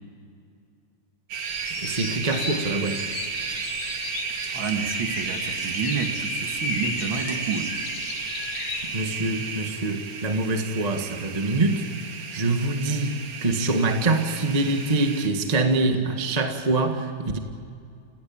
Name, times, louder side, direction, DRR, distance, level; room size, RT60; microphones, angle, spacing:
sound 1, 1.3-15.3, right 6 dB, 75° right, 3.7 m, -33 dB
sound 2, 1.5-9.0, left 5 dB, 55° left, 1.8 m, -36 dB
voice 1, 1.8-3.0 8.8-11.8 12.3-17.4, right 2 dB, 25° right, 5 dB, 0.9 m, -25 dB
voice 2, 4.5-7.7, right 5 dB, 45° right, 4 dB, 2.0 m, -29 dB
29.5 x 16.5 x 8.8 m, 2.3 s
omnidirectional pair, 3.7 m